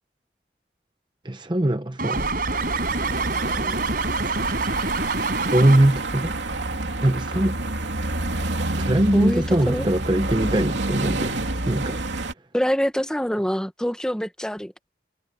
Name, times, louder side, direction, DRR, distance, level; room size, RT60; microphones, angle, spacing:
voice 1, 1.2-2.3 5.5-6.3 7.0-7.6 8.8-12.0, right 1 dB, 25° right, 0.8 m, -21 dB
sound 1, 2.0-6.1, right 3 dB, 50° right, 5.1 m, -27 dB
sound 2, 2.1-12.3, right 2 dB, 85° right, 3.1 m, -28 dB
voice 2, 9.1-9.9 12.5-14.7, equal, 5° left, 1.4 m, -25 dB
head